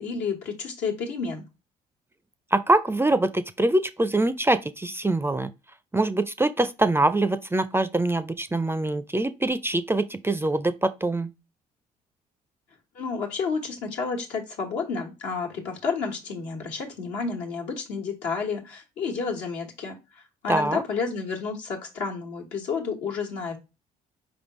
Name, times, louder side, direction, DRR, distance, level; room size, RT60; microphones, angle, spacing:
voice 1, 0.0-1.4 12.9-23.6, left 5 dB, 80° left, 1.3 m, -30 dB
voice 2, 2.5-5.5 5.9-11.3 20.5-20.8, right 2 dB, 15° right, 0.4 m, -24 dB
4.8 x 3.5 x 3.0 m
hypercardioid pair, 55°, 18 cm